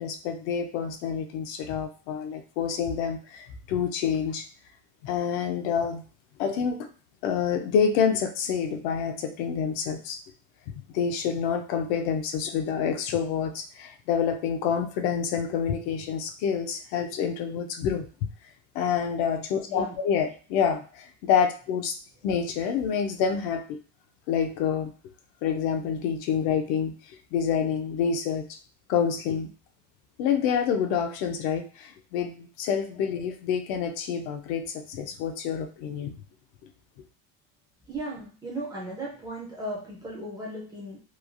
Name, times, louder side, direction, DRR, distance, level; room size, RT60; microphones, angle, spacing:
voice 1, 0.0-4.5 5.0-6.0 6.4-6.9 7.2-10.2 10.7-18.1 18.7-22.0 22.2-23.8 24.3-24.9 25.4-28.6 28.9-29.5 30.2-36.2, left 7 dB, 65° left, 6 dB, 0.5 m, -27 dB
voice 2, 37.9-41.0, right 1 dB, 10° right, -5 dB, 0.4 m, -36 dB
3.1 x 2.2 x 2.4 m, 0.38 s
cardioid pair, 165°, 41 cm